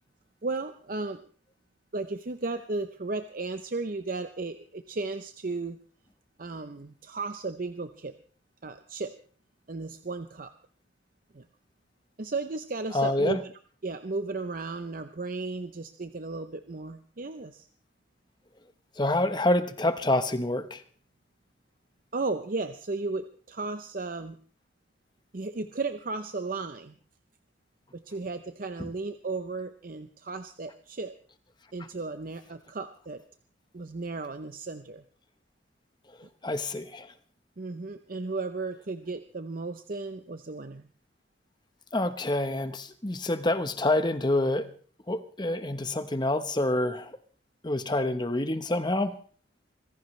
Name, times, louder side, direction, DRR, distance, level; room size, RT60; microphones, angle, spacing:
voice 1, 0.4-1.3 1.9-5.8 6.4-8.1 8.6-9.1 9.7-10.5 11.3-11.4 12.2-13.5 13.8-17.7 22.1-24.4 25.3-27.0 27.9-31.1 31.7-33.2 33.7-35.0 37.6-40.9, right 3 dB, 45° right, 9 dB, 0.7 m, -34 dB
voice 2, 12.9-13.4 19.0-20.8 36.2-37.1 41.9-44.7 45.1-47.1 47.6-49.1, left 1 dB, 25° left, 10 dB, 1.0 m, -27 dB
24.5 x 16.0 x 3.2 m, 0.43 s
head